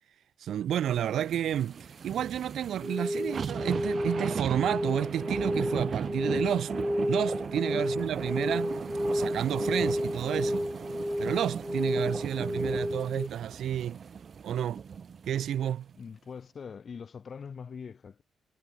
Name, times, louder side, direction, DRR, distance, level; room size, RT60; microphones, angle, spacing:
voice 1, 0.4-6.7 7.1-8.8 9.1-10.7 11.2-14.0 14.4-14.8 15.3-15.9, right 10 dB, 70° right, 2.1 m, -31 dB
sound 1, 1.0-15.5 15.9-16.0, right 6 dB, 40° right, 1.7 m, -38 dB
sound 2, 2.8-13.3, equal, ahead, 0.4 m, -31 dB
voice 2, 16.0-18.2, left 6 dB, 35° left, 2.5 m, -43 dB
wide cardioid pair, 165°, 0 cm